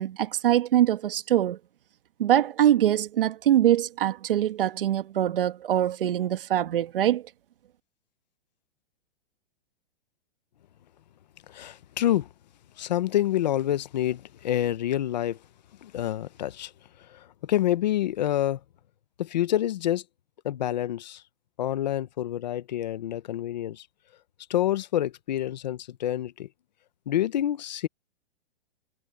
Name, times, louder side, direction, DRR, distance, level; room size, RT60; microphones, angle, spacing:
voice 1, 0.0-1.6 2.2-7.2, right 11 dB, 60° right, 1.5 m, -23 dB
voice 2, 11.5-12.3 12.8-15.4 15.8-16.7 17.1-18.6 19.2-20.0 20.4-21.2 21.6-23.9 24.5-26.5 27.1-27.9, left 12 dB, 45° left, 1.0 m, -27 dB
hypercardioid pair, 180°, 31 cm